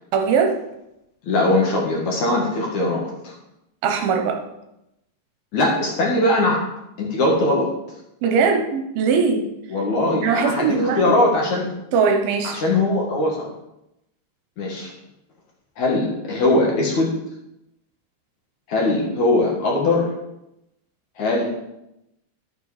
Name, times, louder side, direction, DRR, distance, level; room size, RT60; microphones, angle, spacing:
voice 1, 0.1-0.6 3.8-4.4 8.2-9.5 10.2-11.2 11.9-12.6, right 5 dB, 75° right, 4 dB, 2.6 m, -20 dB
voice 2, 1.2-3.3 5.5-6.6 7.0-7.7 9.7-11.7 12.4-13.5 14.6-14.9 15.8-17.1 18.7-20.1 21.2-21.5, left 2 dB, 55° left, -2 dB, 2.6 m, -20 dB
11.5 x 7.1 x 4.9 m, 0.88 s
omnidirectional pair, 4.8 m